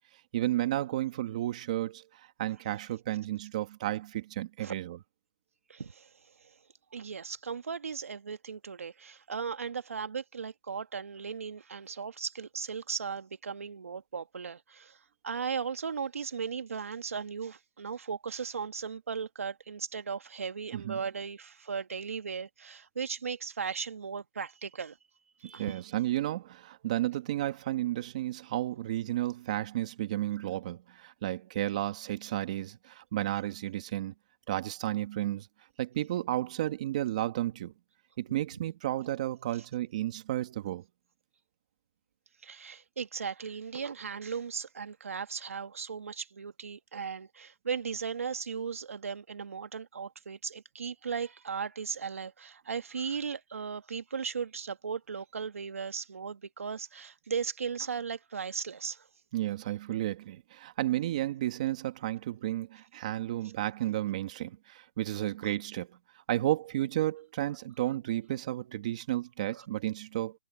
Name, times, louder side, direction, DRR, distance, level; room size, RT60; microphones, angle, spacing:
voice 1, 0.3-5.0 20.7-21.0 25.6-34.1 34.5-35.5 35.8-37.7 38.2-40.8 59.3-65.9 66.3-70.3, right 14 dB, 30° right, 1.8 m, -32 dB
voice 2, 5.7-6.1 6.9-15.0 15.2-25.0 25.4-25.8 42.4-59.0 69.6-69.7, right 6 dB, 65° right, 2.1 m, -37 dB
hypercardioid pair, 170°, 8 cm